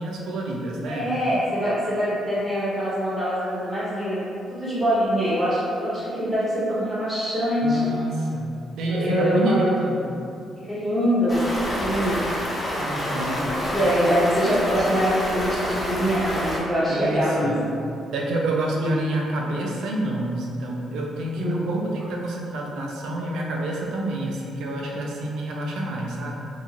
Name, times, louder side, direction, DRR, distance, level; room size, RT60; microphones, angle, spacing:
voice 1, 0.0-1.1 7.6-8.5 8.8-10.1 12.8-13.5 16.9-17.7 18.1-26.5, right 1 dB, 80° right, -1 dB, 0.4 m, -28 dB
voice 2, 0.9-4.2 4.5-7.8 8.8-9.7 10.6-12.2 13.5-17.5 18.8-19.1 21.4-21.8, equal, 20° right, -10 dB, 1.2 m, -24 dB
Stream, 11.3-16.6, equal, 25° left, 0.7 m, -28 dB
2.9 x 2.4 x 2.5 m, 2.4 s
cardioid pair, 90°, 0 cm